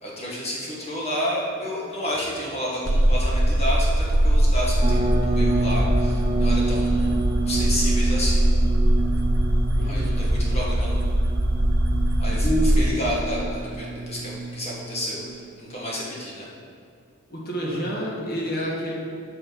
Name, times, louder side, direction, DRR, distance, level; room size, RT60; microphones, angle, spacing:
voice 1, 0.0-7.1 7.5-8.4 9.8-11.0 12.2-16.5, equal, 30° left, -5 dB, 1.8 m, -30 dB
sound 1, 2.9-12.9, right 1 dB, 70° right, 0.9 m, -21 dB
sound 2, 4.8-15.8, right 2 dB, 25° right, 0.5 m, -29 dB
voice 2, 9.8-10.2 12.3-12.8 17.3-18.9, equal, 45° left, -3 dB, 1.7 m, -28 dB
9.3 x 6.0 x 5.2 m, 2.2 s
head